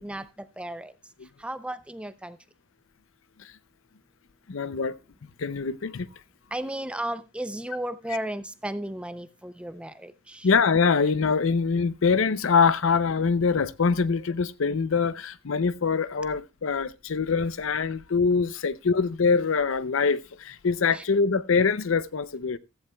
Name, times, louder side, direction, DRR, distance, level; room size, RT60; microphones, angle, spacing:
voice 1, 0.0-0.9 1.4-2.4 6.5-10.5 20.9-21.0, right 1 dB, 5° right, 0.5 m, -34 dB
voice 2, 4.5-5.0 5.4-6.1 10.4-22.6, left 5 dB, 70° left, 0.6 m, -24 dB
15.0 x 14.0 x 2.3 m
head